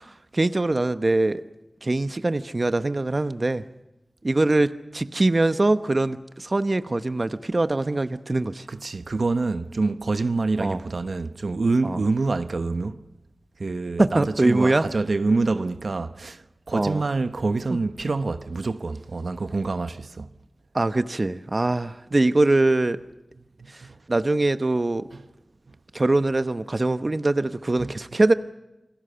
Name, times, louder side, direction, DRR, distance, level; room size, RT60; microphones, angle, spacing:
voice 1, 0.0-1.4 1.8-3.6 4.2-8.7 10.6-10.8 11.8-12.0 14.0-14.8 16.7-17.0 20.7-23.0 23.7-23.8 24.1-25.1 25.9-28.3, right 2 dB, 45° right, 0.9 m, -23 dB
voice 2, 8.7-13.0 13.6-20.3 23.8-24.0 27.8-27.9, right 3 dB, 80° right, 1.1 m, -26 dB
28.5 x 21.0 x 6.9 m
wide cardioid pair, 80°, 0 cm